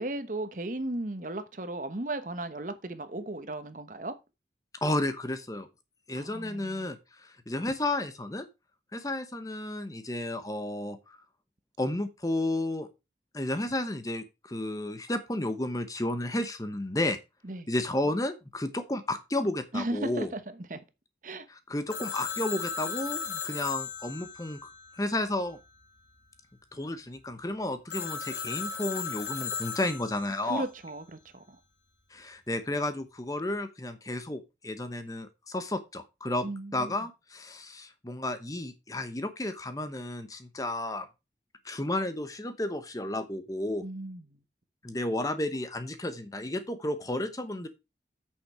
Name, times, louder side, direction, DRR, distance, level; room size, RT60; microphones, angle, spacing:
voice 1, 0.0-4.1 6.1-6.9 17.4-17.7 19.7-20.8 21.2-21.5 30.4-31.6 36.4-37.0 43.8-44.4, right 2 dB, 45° right, 1.1 m, -36 dB
voice 2, 4.8-5.7 6.1-8.5 8.9-11.2 11.8-12.9 13.3-17.2 17.7-20.3 21.5-24.7 25.0-25.6 26.7-30.7 32.1-36.5 36.7-41.1 41.6-43.8 44.8-47.7, left 1 dB, 20° left, 0.9 m, -32 dB
Telephone, 21.9-25.5 27.9-30.4, left 6 dB, 70° left, 2.0 m, -36 dB
8.6 x 6.6 x 4.8 m
head